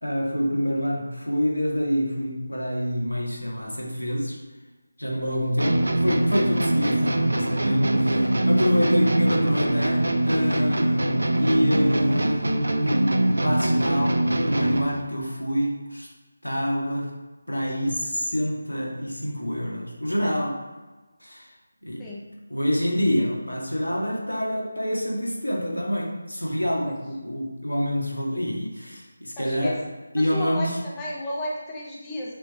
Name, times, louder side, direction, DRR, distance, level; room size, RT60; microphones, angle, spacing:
voice 1, 0.0-4.4 5.0-12.5 12.8-16.1 16.4-17.2 17.5-20.6 21.2-21.5 21.8-22.1 22.5-29.8 30.1-30.8, equal, 80° left, -2 dB, 1.8 m, -27 dB
sound 1, 5.6-15.0, right 1 dB, 65° right, 0.7 m, -23 dB
voice 2, 29.4-29.7 30.2-32.3, equal, 10° left, -4 dB, 1.0 m, -33 dB
7.4 x 3.4 x 4.2 m, 1.2 s
figure-of-eight pair, 160°, 0 cm